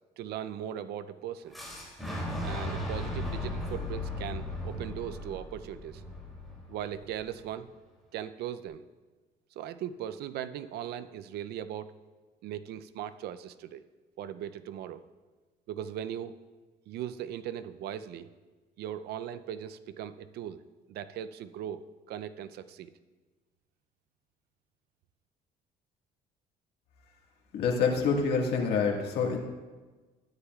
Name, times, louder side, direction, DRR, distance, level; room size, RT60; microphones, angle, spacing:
voice 1, 0.2-1.5 2.4-6.0 6.7-7.7 8.1-8.8 9.6-11.9 12.4-13.8 14.2-15.0 15.7-16.3 16.9-18.3 18.8-20.6 20.9-22.9, right 10 dB, 70° right, 13 dB, 0.5 m, -39 dB
Fire / Explosion, 1.5-7.4, left 1 dB, ahead, 2.7 m, -36 dB
voice 2, 27.5-29.4, left 5 dB, 75° left, 0 dB, 1.7 m, -27 dB
13.0 x 9.7 x 2.4 m, 1.3 s
cardioid pair, 110°, 17 cm